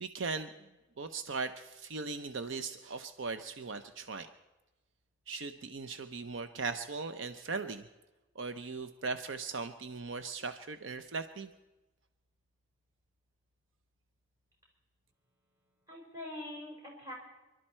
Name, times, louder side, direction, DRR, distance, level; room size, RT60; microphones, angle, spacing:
voice 1, 0.0-0.5 1.0-4.3 5.3-7.9 8.3-11.5, right 4 dB, 70° right, 10 dB, 0.6 m, -38 dB
voice 2, 15.6-17.1, left 1 dB, 15° right, -2 dB, 5.0 m, -44 dB
26.5 x 12.0 x 4.4 m, 1.1 s
head